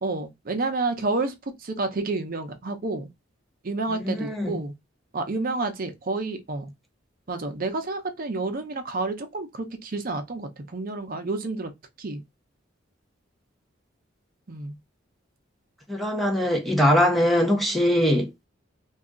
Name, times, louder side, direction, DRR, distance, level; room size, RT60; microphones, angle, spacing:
voice 1, 0.0-1.3 1.6-3.1 3.6-4.7 5.1-6.7 7.3-11.7 12.0-12.2 14.5-14.8, right 3 dB, 50° right, 0.6 m, -29 dB
voice 2, 3.9-4.6 15.9-18.3, equal, ahead, 0.5 m, -22 dB
2.7 x 2.3 x 3.6 m
head